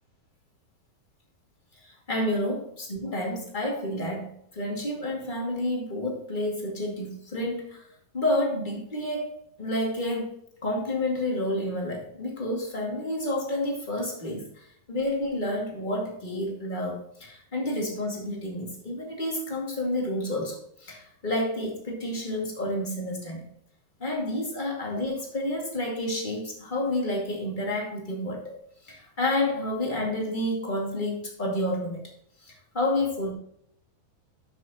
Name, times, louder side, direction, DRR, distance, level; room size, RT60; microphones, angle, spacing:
voice 1, 1.7-7.8 8.1-10.3 10.6-23.5 24.0-28.5 28.8-32.0 32.4-33.3, left 1 dB, 20° left, -2 dB, 1.4 m, -30 dB
12.5 x 6.2 x 2.9 m, 0.67 s
omnidirectional pair, 4.6 m